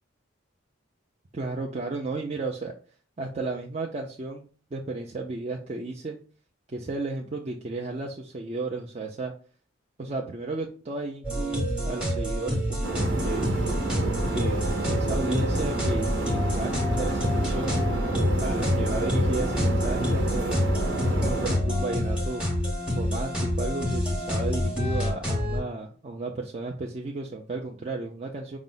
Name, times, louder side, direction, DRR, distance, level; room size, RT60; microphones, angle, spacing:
voice 1, 1.3-2.7 3.2-6.2 6.7-9.3 10.0-13.5 14.3-20.6 21.2-22.4 22.9-28.6, right 2 dB, 30° right, 0 dB, 0.4 m, -33 dB
sound 1, 11.2-25.6, left 1 dB, 5° right, 0.8 m, -27 dB
sound 2, 12.8-21.6, right 2 dB, 65° right, 0.8 m, -29 dB
5.2 x 2.0 x 3.7 m, 0.40 s
head